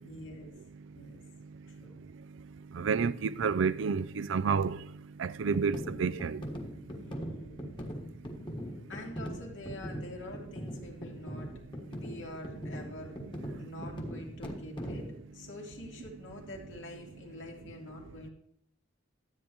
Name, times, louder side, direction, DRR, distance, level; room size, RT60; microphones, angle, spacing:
voice 1, 0.0-0.5 0.9-1.2 1.7-2.0 6.9-7.8 8.9-11.5 12.0-13.1 13.6-18.3, left 1 dB, 80° left, 2.6 m, -46 dB
voice 2, 2.7-4.8 5.2-6.4 13.8-13.9, right 5 dB, 85° right, 0.4 m, -29 dB
sound 1, 5.5-15.2, equal, 25° left, 1.4 m, -41 dB
13.0 x 8.9 x 3.1 m
head